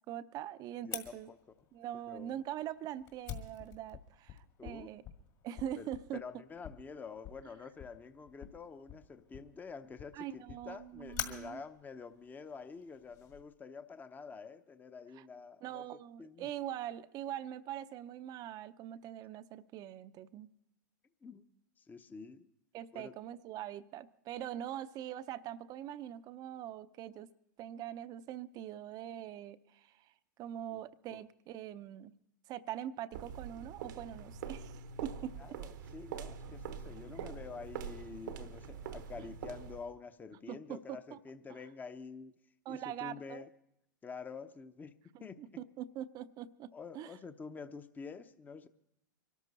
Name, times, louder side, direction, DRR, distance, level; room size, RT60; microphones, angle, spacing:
voice 1, 0.1-1.3 1.7-5.0 5.4-6.2 10.1-11.6 15.2-15.3 15.6-20.5 22.7-27.3 27.6-30.1 30.4-32.1 32.5-35.3 40.5-41.2 42.7-43.5 45.1-47.2, right 11 dB, 40° right, 14 dB, 0.6 m, -43 dB
voice 2, 0.8-1.4 2.1-2.4 4.6-4.9 5.8-15.8 16.2-16.5 21.2-21.5 21.9-22.5 22.9-23.1 31.1-31.2 35.4-42.3 42.7-43.5 44.0-44.9 45.2-45.4 46.7-48.7, left 5 dB, 15° left, 10 dB, 0.8 m, -48 dB
Fire, 0.9-13.4, left 10 dB, 45° left, 1.9 m, -48 dB
sound 1, 33.1-39.9, right 7 dB, 70° right, 1.1 m, -44 dB
23.5 x 13.0 x 4.2 m, 0.81 s
hypercardioid pair, 110°, 11 cm